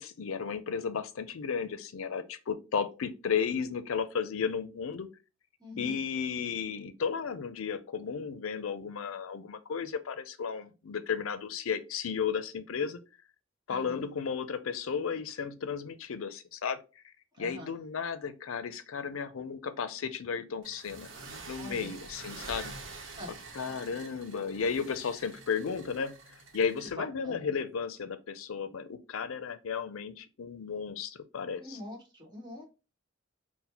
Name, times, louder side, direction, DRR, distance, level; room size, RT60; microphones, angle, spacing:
voice 1, 0.0-5.1 5.8-13.0 13.7-16.8 17.4-21.1 21.5-22.7 23.5-26.2 26.5-31.8, left 6 dB, 85° left, 0.5 m, -34 dB
voice 2, 5.6-6.0 13.7-14.1 17.3-17.8 21.6-22.0 23.2-23.3 23.6-23.9 27.0-27.5 31.6-32.6, left 1 dB, 20° right, 1.3 m, -45 dB
sound 1, 20.6-26.9, right 3 dB, 70° right, 0.9 m, -47 dB
4.2 x 2.1 x 4.1 m
head